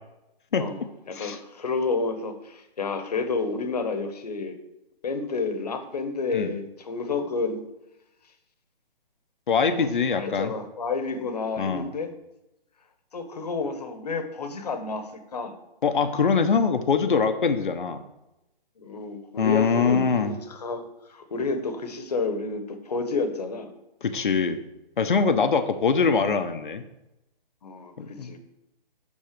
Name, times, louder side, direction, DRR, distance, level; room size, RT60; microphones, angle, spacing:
voice 1, 0.5-0.8 1.1-4.6 5.0-7.6 9.8-12.1 13.1-15.6 18.8-23.7 27.6-28.4, left 4 dB, 45° left, 8 dB, 1.3 m, -30 dB
voice 2, 9.5-10.5 11.6-11.9 15.8-18.0 19.4-20.4 24.0-24.6 25.0-26.8 28.0-28.3, left 5 dB, 60° left, 9 dB, 1.1 m, -23 dB
12.0 x 4.1 x 6.7 m, 0.93 s
hypercardioid pair, 175°, 29 cm